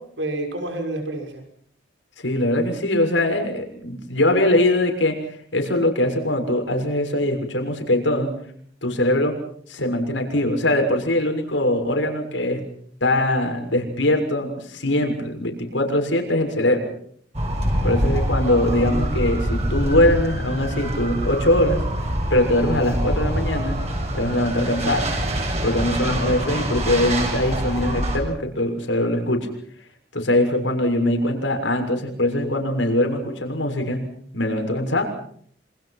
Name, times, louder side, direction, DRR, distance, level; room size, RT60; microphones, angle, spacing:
voice 1, 0.0-1.4 26.0-26.6, right 2 dB, 80° right, 4 dB, 6.0 m, -30 dB
voice 2, 2.2-5.2 5.5-8.3 8.8-9.3 9.7-12.6 13.0-16.8 17.8-21.8 22.3-23.8 24.1-25.0 25.6-29.5 30.1-34.0 34.3-35.0, left 1 dB, 85° left, 4 dB, 6.6 m, -22 dB
sound 1, 17.3-28.2, right 1 dB, 35° right, 7.1 m, -25 dB
28.0 x 26.0 x 5.9 m, 0.63 s
head